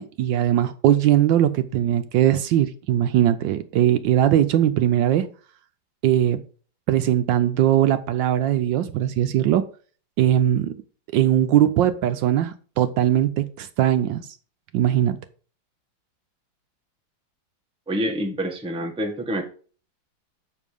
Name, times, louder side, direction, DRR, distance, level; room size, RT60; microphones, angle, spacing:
voice 1, 0.0-5.3 6.0-6.4 6.9-9.6 10.2-10.7 11.1-14.2 14.7-15.2, right 11 dB, 75° right, 10 dB, 1.2 m, -20 dB
voice 2, 17.9-19.4, equal, 5° right, 2 dB, 0.9 m, -27 dB
7.2 x 5.4 x 4.8 m, 0.40 s
omnidirectional pair, 2.2 m